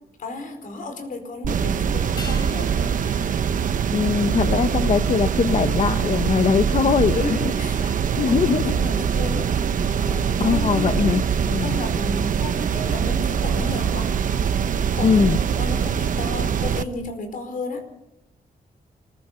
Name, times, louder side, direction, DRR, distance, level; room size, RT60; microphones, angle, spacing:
voice 1, 0.2-2.7 7.1-7.8 8.2-9.5 10.0-11.2 11.6-14.1 15.0-17.9, left 2 dB, 60° left, 7 dB, 4.7 m, -33 dB
sound 1, 1.4-16.8, right 7 dB, 55° right, 1.0 m, -23 dB
sound 2, 2.2-6.9 7.1-7.2, left 2 dB, 30° left, 4.1 m, -44 dB
voice 2, 3.9-7.4 7.8-8.7 10.4-11.8 15.0-15.4, left 6 dB, 45° left, 10 dB, 0.9 m, -21 dB
25.0 x 21.0 x 5.6 m, 0.83 s
wide cardioid pair, 175°, 16 cm